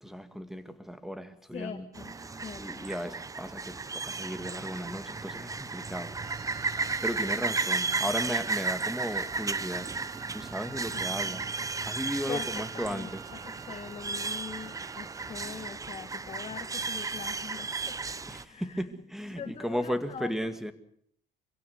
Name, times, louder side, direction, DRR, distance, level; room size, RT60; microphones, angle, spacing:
voice 1, 0.0-1.9 2.6-6.1 7.0-9.9 10.3-11.5 11.9-13.2 18.3-20.7, equal, ahead, 10 dB, 2.2 m, -35 dB
voice 2, 1.5-2.1 2.4-2.9 10.9-11.4 12.3-18.2 18.4-18.8 19.3-20.5, left 7 dB, 40° left, 7 dB, 1.6 m, -42 dB
sound 1, 1.9-18.4, right 4 dB, 20° right, 0.9 m, -34 dB
Wind instrument woodwind instrument, 6.2-15.5, right 16 dB, 75° right, 2.0 m, -49 dB
26.0 x 16.5 x 8.2 m, 0.64 s
cardioid pair, 110°, 17 cm